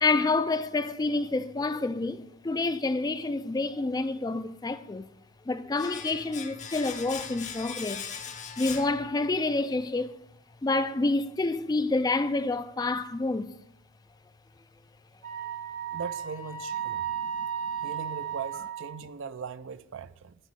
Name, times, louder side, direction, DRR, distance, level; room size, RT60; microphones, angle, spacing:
voice 1, 0.0-5.1 5.5-8.0 8.6-10.1 10.6-13.5, left 3 dB, 20° left, 0.3 m, -28 dB
Domestic sounds home sounds, 5.8-9.6 9.8-10.0, left 6 dB, 35° left, 0.7 m, -40 dB
Wind instrument woodwind instrument, 15.2-19.1, right 8 dB, 75° right, 3.2 m, -34 dB
voice 2, 15.9-17.1 17.8-20.4, right 6 dB, 60° right, 0.4 m, -39 dB
11.0 x 4.1 x 7.8 m
head